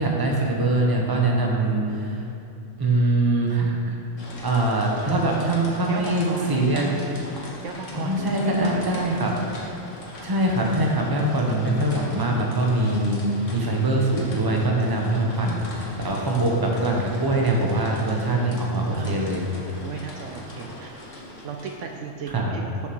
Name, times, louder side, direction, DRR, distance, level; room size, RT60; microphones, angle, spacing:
voice 1, 0.0-2.2 2.8-3.9 4.4-7.1 7.9-9.3 10.2-13.2 13.5-19.4 22.3-22.5, right 2 dB, 20° right, -1 dB, 0.9 m, -23 dB
sound 1, 4.2-22.1, left 1 dB, 65° left, 1.6 m, -41 dB
voice 2, 5.9-6.9 7.6-9.1 18.9-19.3 19.8-21.0 21.4-22.9, right 5 dB, 70° right, 3 dB, 0.9 m, -35 dB
6.6 x 6.4 x 6.2 m, 2.8 s
omnidirectional pair, 1.4 m